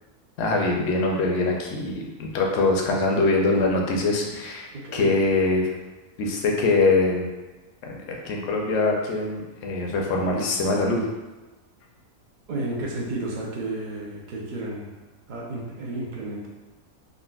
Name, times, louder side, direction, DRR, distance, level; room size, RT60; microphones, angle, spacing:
voice 1, 0.4-5.7 6.2-7.3 7.8-11.1, left 3 dB, 70° left, 0 dB, 0.8 m, -23 dB
voice 2, 4.7-5.1 12.5-14.9 15.3-16.5, right 2 dB, 55° right, -3 dB, 0.5 m, -32 dB
3.8 x 2.1 x 2.3 m, 1.2 s
omnidirectional pair, 1.5 m